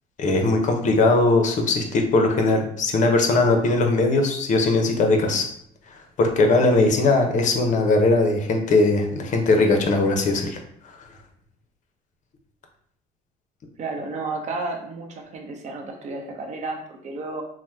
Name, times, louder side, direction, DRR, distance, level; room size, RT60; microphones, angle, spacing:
voice 1, 0.2-5.5 6.2-10.6, left 2 dB, 45° left, 4 dB, 0.6 m, -19 dB
voice 2, 13.8-17.4, right 3 dB, 45° right, 2 dB, 0.6 m, -32 dB
2.8 x 2.0 x 3.4 m, 0.65 s
cardioid pair, 110°, 17 cm